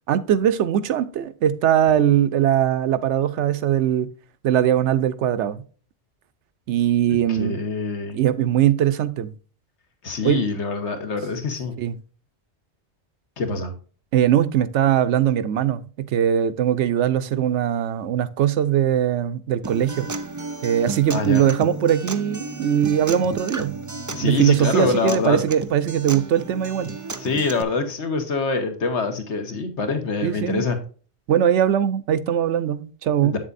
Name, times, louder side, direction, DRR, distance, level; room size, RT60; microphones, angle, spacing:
voice 1, 0.1-4.1 4.4-5.6 6.7-7.6 8.1-9.3 10.2-10.4 11.8-12.0 14.1-15.8 16.1-20.1 20.6-23.7 24.2-26.9 30.2-30.6 31.3-33.4, right 10 dB, 85° right, 0.9 m, -20 dB
voice 2, 7.3-8.2 10.0-11.8 13.4-13.7 21.1-21.4 24.1-25.4 27.2-30.8 33.2-33.4, left 4 dB, 80° left, 1.4 m, -25 dB
Acoustic guitar, 19.6-27.6, right 3 dB, 30° right, 0.3 m, -33 dB
8.1 x 7.3 x 2.5 m
omnidirectional pair, 1.2 m